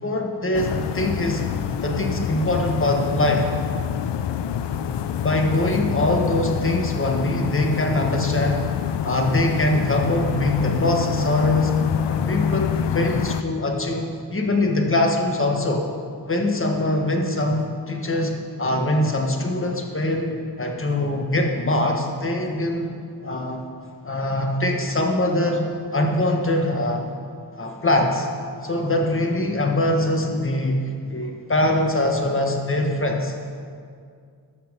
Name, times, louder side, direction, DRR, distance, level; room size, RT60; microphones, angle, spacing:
voice 1, 0.0-1.5 1.8-3.5 5.2-8.7 9.0-11.7 12.0-15.8 16.3-22.9 23.2-23.6 24.0-27.0 27.5-28.3 28.6-33.3, left 1 dB, 30° left, 2 dB, 1.4 m, -23 dB
sound 1, 0.5-13.4, left 8 dB, 90° left, 0.5 m, -26 dB
13.5 x 5.8 x 5.4 m, 2.2 s
wide cardioid pair, 80°, 41 cm